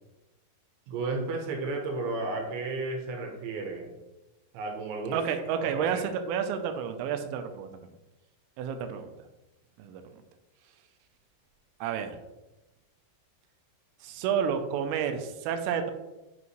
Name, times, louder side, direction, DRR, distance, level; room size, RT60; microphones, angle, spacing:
voice 1, 0.9-3.9 4.5-5.2 5.6-6.1, right 3 dB, 75° right, 2 dB, 3.1 m, -33 dB
voice 2, 5.1-7.7 8.6-9.1 9.8-10.0 11.8-12.2 14.0-15.9, right 7 dB, 90° right, 6 dB, 3.3 m, -30 dB
9.6 x 6.0 x 3.1 m, 1.0 s
omnidirectional pair, 5.8 m